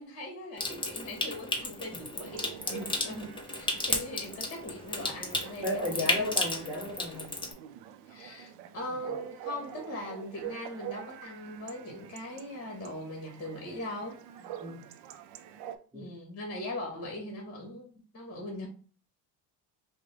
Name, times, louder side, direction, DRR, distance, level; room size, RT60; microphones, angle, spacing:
voice 1, 0.0-6.3 8.1-14.2 15.9-17.9 18.1-18.7, left 1 dB, 30° left, 1.5 m, -40 dB
Water tap faucet / Sink (filling or washing) / Trickle dribble, 0.6-7.5, left 2 dB, 10° left, 0.8 m, -34 dB
Chatter / Bark / Livestock farm animals working animals, 2.2-15.8, right 11 dB, 65° right, 0.6 m, -46 dB
voice 2, 5.6-7.3 14.6-14.9 15.9-16.1, left 1 dB, 10° right, 1.2 m, -34 dB
5.1 x 2.3 x 3.4 m
cardioid pair, 110°, 47 cm